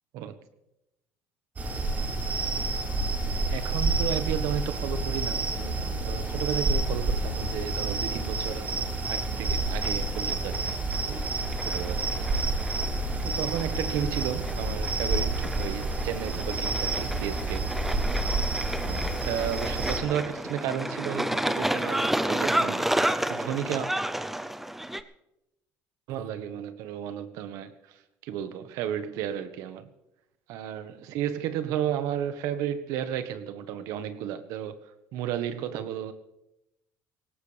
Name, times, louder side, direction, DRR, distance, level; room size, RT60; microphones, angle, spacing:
sound 1, 1.6-20.0, right 2 dB, 30° right, 5.5 m, -29 dB
voice 1, 3.3-10.8 11.0-11.3 11.6-12.3 13.2-17.6 18.8-22.8 23.3-23.9 26.1-29.9 30.5-34.8 35.1-36.1, right 10 dB, 75° right, 10 dB, 1.3 m, -33 dB
sound 2, 6.3-25.0, right 1 dB, 5° right, 0.6 m, -32 dB
18.5 x 17.0 x 3.4 m, 0.91 s
cardioid pair, 120°, 6 cm